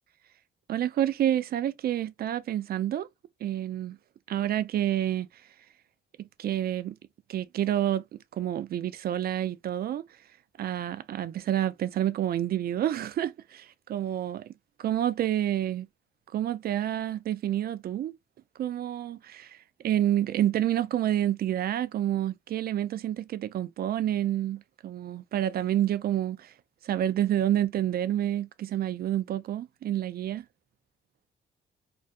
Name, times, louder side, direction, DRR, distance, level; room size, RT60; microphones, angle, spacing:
voice 1, 0.7-3.1 3.4-4.0 4.3-5.3 6.2-7.0 7.3-10.0 10.6-14.5 14.8-15.9 16.3-18.2 18.6-19.6 19.8-26.5 26.8-30.5, right 11 dB, 50° right, 0.4 m, -28 dB
2.6 x 2.3 x 2.2 m
cardioid pair, 90°, 20 cm